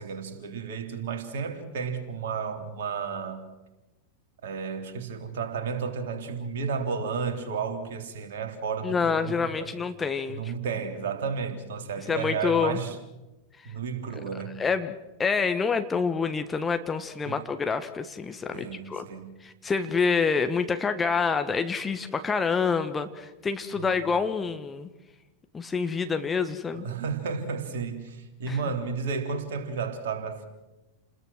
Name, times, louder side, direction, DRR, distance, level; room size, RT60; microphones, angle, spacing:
voice 1, 0.0-3.4 4.4-9.8 10.3-13.0 13.6-14.6 17.3-17.4 18.5-19.3 23.7-24.1 26.7-30.5, right 5 dB, 55° right, 3.5 m, -32 dB
voice 2, 8.8-10.5 12.1-12.8 14.6-19.0 19.4-24.9 25.5-26.9 28.5-28.6, left 5 dB, 15° left, 1.5 m, -27 dB
30.0 x 21.0 x 6.4 m
figure-of-eight pair, 90°, 0 cm